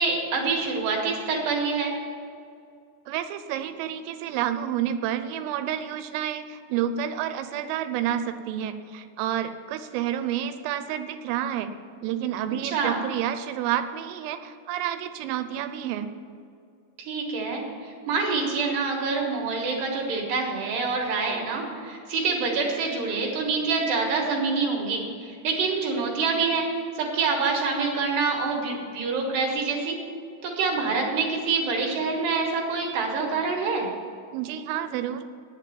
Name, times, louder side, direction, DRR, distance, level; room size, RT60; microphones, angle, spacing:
voice 1, 0.0-1.9 12.6-13.0 17.0-30.0 30.4-33.9, right 4 dB, 65° right, -1 dB, 3.0 m, -26 dB
voice 2, 3.1-11.7 12.0-16.1 34.3-35.3, right 10 dB, 85° right, 10 dB, 3.3 m, -29 dB
9.2 x 7.7 x 9.1 m, 2.4 s
omnidirectional pair, 5.8 m